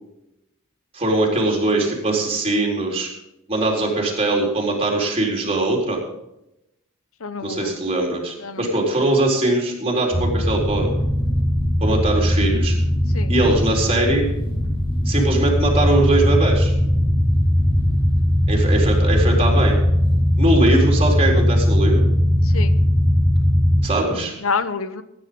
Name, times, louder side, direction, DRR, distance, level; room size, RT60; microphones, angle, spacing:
voice 1, 0.9-3.1 3.5-6.0 7.4-10.9 11.8-12.7 13.3-14.3 15.0-16.7 18.5-19.8 20.4-22.1 23.8-24.3, right 2 dB, 30° right, 0 dB, 4.3 m, -21 dB
voice 2, 7.2-7.8 8.4-8.7 13.1-13.3 22.4-22.8 24.4-25.0, left 4 dB, 75° left, 13 dB, 0.9 m, -27 dB
sound 1, 10.1-23.8, equal, 25° left, 6.2 m, -19 dB
16.5 x 9.9 x 5.3 m, 0.86 s
head